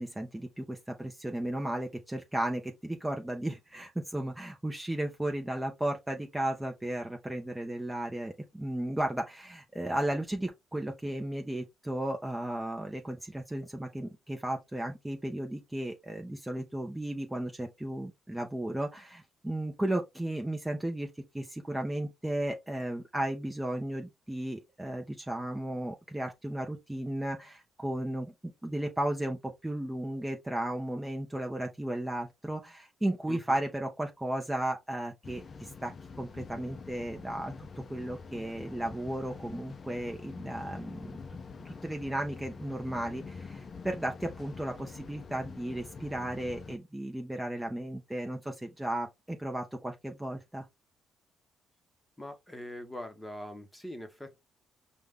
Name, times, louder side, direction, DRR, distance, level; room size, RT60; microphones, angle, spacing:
voice 1, 0.0-21.1 21.3-28.3 28.6-41.1 41.6-50.7, right 1 dB, 10° right, 0.8 m, -35 dB
sound 1, 35.2-46.8, left 4 dB, 40° left, 0.5 m, -45 dB
voice 2, 52.2-54.4, left 1 dB, 10° left, 1.1 m, -42 dB
5.1 x 2.4 x 3.6 m
cardioid pair, 90°, 0 cm